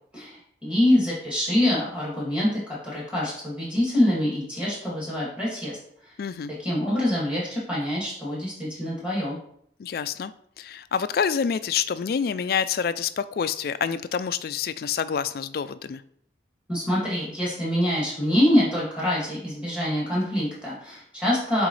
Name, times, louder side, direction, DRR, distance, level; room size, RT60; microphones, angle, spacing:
voice 1, 0.1-5.8 6.6-9.4 16.7-21.7, left 1 dB, 5° right, -7 dB, 2.4 m, -25 dB
voice 2, 6.2-6.5 9.8-10.3 10.6-16.0, left 7 dB, 55° left, 14 dB, 0.3 m, -27 dB
7.9 x 3.8 x 3.2 m, 0.67 s
head